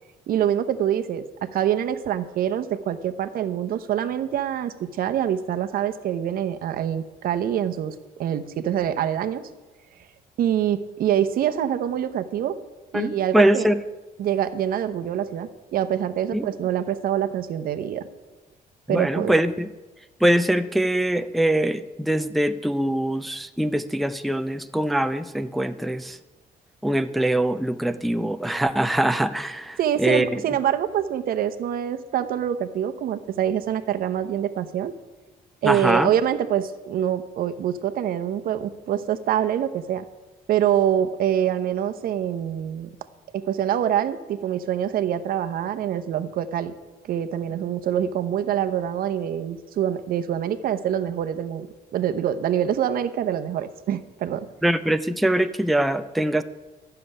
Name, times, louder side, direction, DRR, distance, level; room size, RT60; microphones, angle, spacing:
voice 1, 0.3-9.5 10.4-12.6 12.9-13.7 14.2-18.1 18.9-19.3 29.8-34.9 35.6-40.0 40.5-42.9 43.3-46.7 47.1-51.7 51.9-54.5, right 10 dB, 70° right, 9 dB, 0.9 m, -25 dB
voice 2, 12.9-13.8 16.3-16.5 18.9-19.7 20.2-26.2 26.8-30.4 35.6-36.1 54.6-56.4, right 1 dB, ahead, 9 dB, 0.4 m, -23 dB
12.5 x 6.8 x 9.9 m, 1.2 s
cardioid pair, 140°, 16 cm